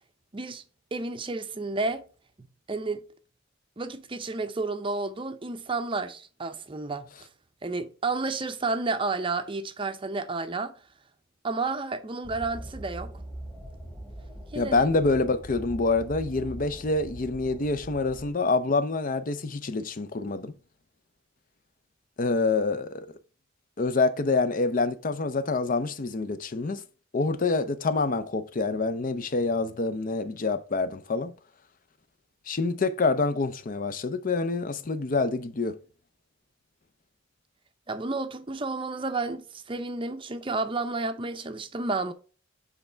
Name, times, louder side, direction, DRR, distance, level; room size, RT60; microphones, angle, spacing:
voice 1, 0.3-0.6 0.9-2.0 2.7-3.0 3.8-7.3 7.6-10.7 11.4-13.1 14.5-14.9 37.9-42.1, right 3 dB, 25° right, 0.5 m, -31 dB
sound 1, 12.2-18.3, right 1 dB, 10° left, 1.6 m, -42 dB
voice 2, 14.6-20.5 22.2-23.1 23.8-26.8 27.1-31.3 32.5-35.8, left 3 dB, 45° left, 0.6 m, -26 dB
7.7 x 3.4 x 4.4 m
head